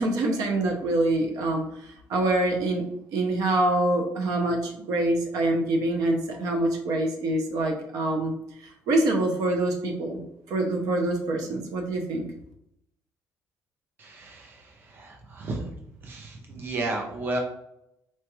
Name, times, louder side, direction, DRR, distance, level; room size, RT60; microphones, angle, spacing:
voice 1, 0.0-2.8 3.1-8.3 8.6-10.2 10.5-12.3, right 2 dB, 75° right, 2 dB, 0.6 m, -25 dB
voice 2, 14.0-15.7 16.0-17.4, right 2 dB, 35° right, 0 dB, 0.6 m, -33 dB
4.3 x 2.3 x 3.0 m, 0.79 s
cardioid pair, 160°, 6 cm